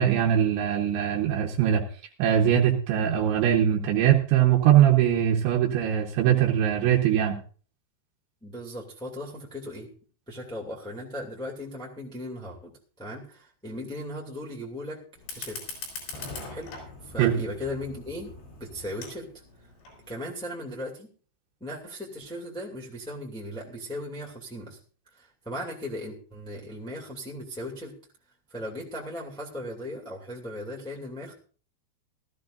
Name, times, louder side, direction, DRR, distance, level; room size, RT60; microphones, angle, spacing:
voice 1, 0.0-1.8 2.2-7.4 17.2-17.3, right 10 dB, 90° right, -1 dB, 3.5 m, -21 dB
voice 2, 8.4-9.9 10.3-15.0 15.3-15.6 16.5-16.7 17.0-18.3 18.6-19.3 20.1-21.1 21.6-24.8 25.1-27.9 28.5-31.3, left 1 dB, 5° left, -2 dB, 0.9 m, -37 dB
Fire, 15.2-20.2, left 4 dB, 85° left, 6.4 m, -41 dB
19.0 x 13.5 x 2.6 m, 0.40 s
omnidirectional pair, 5.1 m